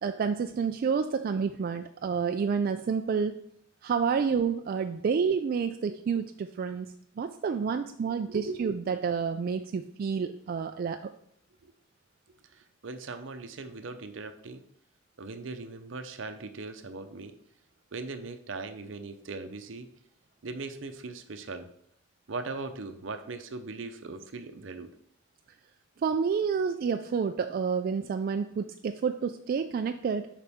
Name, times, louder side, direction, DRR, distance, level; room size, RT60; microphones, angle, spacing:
voice 1, 0.0-3.4 3.8-6.9 7.2-11.1 26.0-30.3, right 6 dB, 50° right, 7 dB, 0.3 m, -29 dB
voice 2, 8.3-8.7 11.6-11.7 12.5-14.6 15.2-17.3 17.9-19.9 20.4-21.7 22.3-24.9, right 3 dB, 75° right, 8 dB, 0.7 m, -39 dB
6.9 x 5.0 x 3.5 m, 0.71 s
head